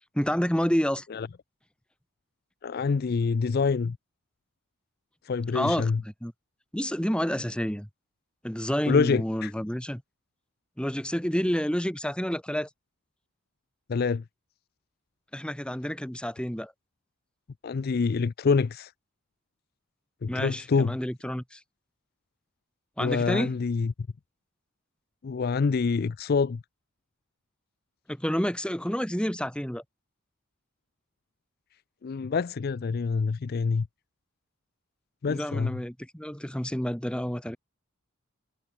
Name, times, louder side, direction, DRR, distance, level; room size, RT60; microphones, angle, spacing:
voice 1, 0.1-1.1 5.5-6.3 6.7-7.9 8.4-10.0 10.8-12.7 15.3-16.7 20.3-21.6 23.0-23.6 28.1-29.8 35.3-37.6, equal, 5° left, 1.6 m, -29 dB
voice 2, 2.6-4.0 5.3-6.0 8.9-9.5 13.9-14.2 17.6-18.9 20.2-20.9 23.0-23.9 25.2-26.6 32.0-33.9 35.2-35.7, left 5 dB, 45° left, 0.4 m, -26 dB
head